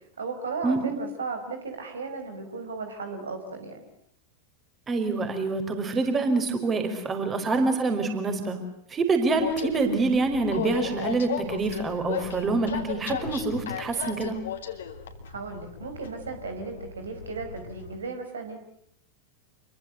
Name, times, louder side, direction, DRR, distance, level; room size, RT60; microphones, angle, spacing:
voice 1, 0.0-3.9 15.3-18.6, right 4 dB, 70° right, 6 dB, 4.8 m, -35 dB
voice 2, 0.6-1.0 4.9-8.6 8.9-14.4, right 3 dB, 20° right, 6 dB, 5.1 m, -26 dB
Train, 9.3-18.0, left 7 dB, 65° left, 3.2 m, -35 dB
28.5 x 23.0 x 8.2 m, 0.69 s
figure-of-eight pair, 90°, 0 cm